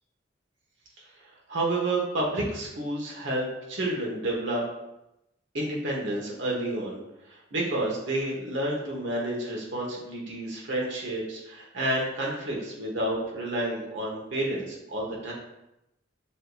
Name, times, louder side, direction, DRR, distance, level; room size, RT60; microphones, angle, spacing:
voice 1, 1.2-4.6 5.5-7.0 7.3-15.3, right 1 dB, 85° right, -3 dB, 1.0 m, -30 dB
6.4 x 2.6 x 2.3 m, 0.88 s
head